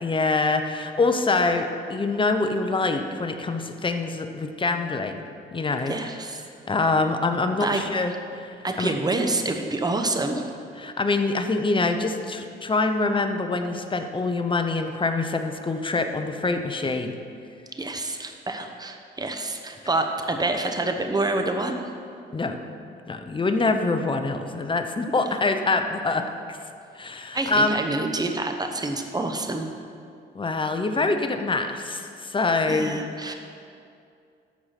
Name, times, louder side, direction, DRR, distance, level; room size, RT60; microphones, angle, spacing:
voice 1, 0.0-5.2 5.5-6.1 6.7-8.9 10.8-17.1 22.3-22.6 23.1-26.6 26.9-27.8 30.3-33.0, left 3 dB, 25° left, 7 dB, 0.8 m, -25 dB
voice 2, 5.9-6.4 7.6-7.8 8.6-10.4 17.7-21.8 27.3-29.6 32.7-33.3, right 2 dB, 20° right, 5 dB, 1.0 m, -27 dB
13.5 x 4.8 x 5.8 m, 2.4 s
cardioid pair, 90°, 20 cm